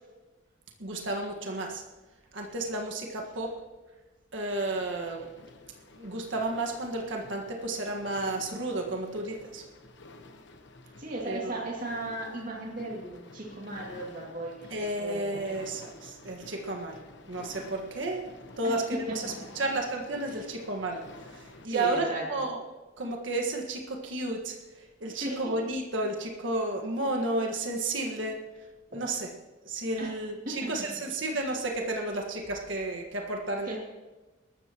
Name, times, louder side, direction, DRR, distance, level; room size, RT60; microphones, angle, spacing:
voice 1, 0.8-1.8 2.3-3.6 4.3-5.3 6.0-9.6 11.3-11.6 14.7-22.6 23.0-28.5 28.9-29.3 29.7-33.8, right 2 dB, 75° right, 1 dB, 1.7 m, -32 dB
sound 1, 4.5-21.7, left 2 dB, 60° left, 1.1 m, -51 dB
voice 2, 10.9-15.4 18.6-18.8 19.1-19.2 20.3-20.4 21.6-22.2 25.1-25.5 28.9-29.0 30.0-30.1 30.4-30.7 33.6-33.8, right 1 dB, 45° right, -3 dB, 2.5 m, -36 dB
21.0 x 13.0 x 3.0 m, 1.2 s
head